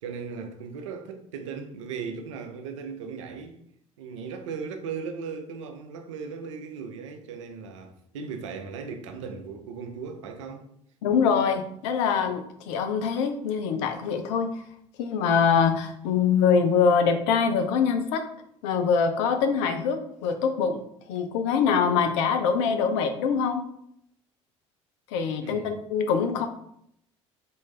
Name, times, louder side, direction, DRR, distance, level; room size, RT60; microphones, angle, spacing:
voice 1, 0.0-3.6 4.0-10.6 25.4-25.8, right 5 dB, 80° right, 0.5 m, -37 dB
voice 2, 11.0-14.5 15.0-18.3 18.6-20.8 21.1-23.7 25.1-26.5, left 6 dB, 75° left, 0.5 m, -24 dB
3.8 x 2.5 x 3.7 m
hypercardioid pair, 60°, 16 cm